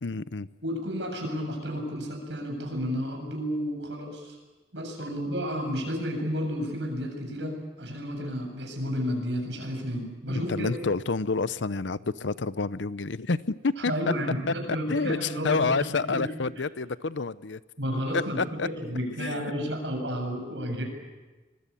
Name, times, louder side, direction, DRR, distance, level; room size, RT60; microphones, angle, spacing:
voice 1, 0.0-0.5 10.3-14.1 14.5-17.6 18.1-18.7 19.2-19.4, left 4 dB, 75° left, 16 dB, 0.7 m, -29 dB
voice 2, 0.6-4.4 4.7-10.7 13.9-16.3 17.8-20.8, equal, 70° right, 2 dB, 7.7 m, -32 dB
25.5 x 21.5 x 8.6 m, 1.2 s
head